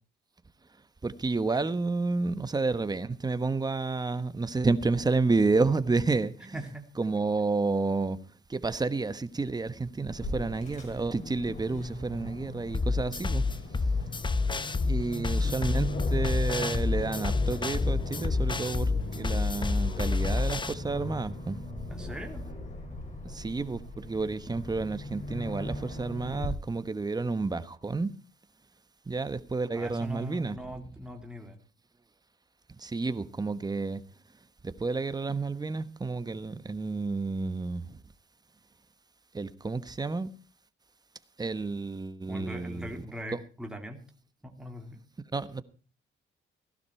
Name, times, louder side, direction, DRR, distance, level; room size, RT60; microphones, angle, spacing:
voice 1, 1.0-6.6 7.0-8.2 8.5-13.4 14.8-21.6 23.2-28.1 29.1-30.6 32.8-34.0 34.6-38.0 39.3-40.3 41.4-43.0 43.3-43.4 45.3-45.6, right 3 dB, 20° right, 1.2 m, -30 dB
voice 2, 6.5-6.9 21.9-22.4 29.7-31.6 42.3-44.0 44.4-45.0, equal, 5° right, 2.8 m, -41 dB
Aircraft, 10.1-26.5, left 2 dB, 40° left, 6.1 m, -39 dB
sound 1, 12.7-20.7, left 3 dB, 25° left, 0.9 m, -28 dB
16.0 x 12.0 x 4.4 m
cardioid pair, 90°, 20 cm